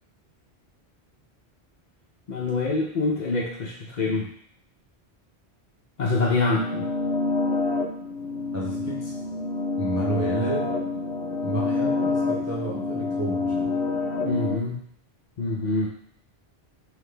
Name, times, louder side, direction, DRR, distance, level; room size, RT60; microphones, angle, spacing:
voice 1, 2.3-4.3 6.0-6.9 14.2-14.8 15.4-15.9, left 3 dB, 50° left, -2 dB, 0.6 m, -25 dB
sound 1, 6.5-14.6, left 3 dB, 85° left, 0.9 m, -27 dB
voice 2, 8.5-9.1 9.8-10.7 11.4-13.7, right 2 dB, 20° right, -4 dB, 0.5 m, -31 dB
3.7 x 3.2 x 3.3 m, 0.64 s
omnidirectional pair, 1.1 m